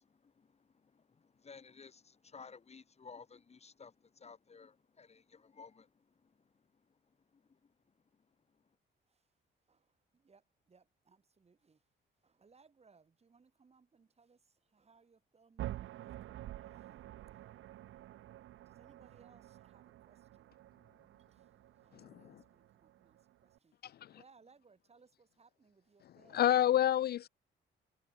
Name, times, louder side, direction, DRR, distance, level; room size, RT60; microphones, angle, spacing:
voice 1, 0.0-6.5 7.3-7.7, left 5 dB, 30° left, 1.3 m, -56 dB
voice 2, 10.1-11.8 12.2-14.4 14.7-17.0 17.3-17.5 18.7-20.5 21.3-21.4 21.8-23.7 24.1-26.4, right 5 dB, 30° right, 3.2 m, -67 dB
sound 1, 15.6-23.6, right 14 dB, 80° right, 3.0 m, -49 dB
voice 3, 21.9-22.4 23.8-24.1 26.3-27.3, left 11 dB, 55° left, 0.4 m, -29 dB
cardioid pair, 90°, 20 cm